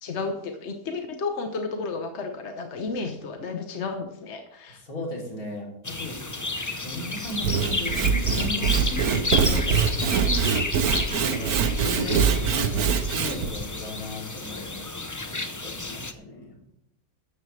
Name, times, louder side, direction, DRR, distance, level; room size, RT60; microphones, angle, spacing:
voice 1, 0.0-4.8 10.2-10.7, left 4 dB, 55° left, 4 dB, 1.2 m, -32 dB
voice 2, 4.7-6.2 6.6-10.3 11.2-12.9 13.1-14.9 15.3-16.6, left 1 dB, 80° left, -2 dB, 3.7 m, -36 dB
sound 1, 5.8-16.1, left 2 dB, 20° left, 0.5 m, -31 dB
Sawing / Wood, 7.3-13.5, right 6 dB, 90° right, 1.4 m, -24 dB
13.5 x 11.5 x 3.3 m, 0.84 s
omnidirectional pair, 1.5 m